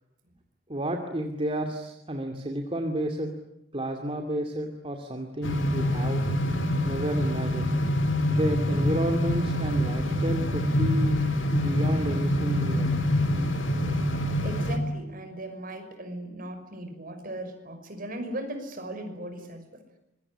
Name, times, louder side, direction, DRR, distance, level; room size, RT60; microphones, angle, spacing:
voice 1, 0.7-3.3 3.7-6.2 6.8-7.7 8.3-11.2 11.5-12.9, right 1 dB, 30° right, 4 dB, 2.5 m, -31 dB
sound 1, 5.4-14.8, left 1 dB, 80° left, 3.5 m, -26 dB
voice 2, 14.4-19.8, right 1 dB, 45° right, 7 dB, 5.7 m, -37 dB
26.0 x 22.5 x 10.0 m, 0.84 s
head